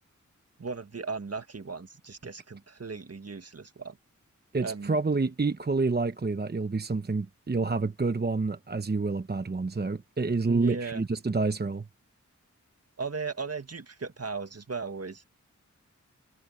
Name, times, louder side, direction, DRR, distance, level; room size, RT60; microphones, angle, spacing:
voice 1, 0.6-4.0 4.6-5.0 10.5-11.0 13.0-15.3, right 4 dB, 50° right, 1.7 m, -37 dB
voice 2, 4.5-11.8, right 3 dB, 30° right, 0.8 m, -28 dB
cardioid pair, 50°, 31 cm